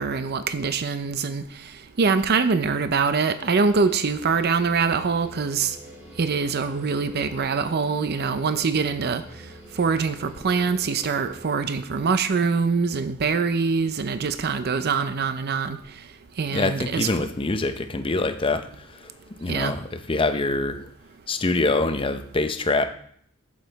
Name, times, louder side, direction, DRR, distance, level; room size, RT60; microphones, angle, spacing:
voice 1, 0.0-1.4 2.0-5.8 6.2-9.2 9.8-15.8 16.4-17.1 19.5-19.7, right 5 dB, 50° right, 10 dB, 0.5 m, -24 dB
sound 1, 3.4-11.6, equal, 10° right, 2.1 m, -45 dB
voice 2, 16.5-19.1 19.4-20.8 21.3-22.9, left 2 dB, 25° left, 8 dB, 0.6 m, -25 dB
7.9 x 7.5 x 4.0 m, 0.64 s
head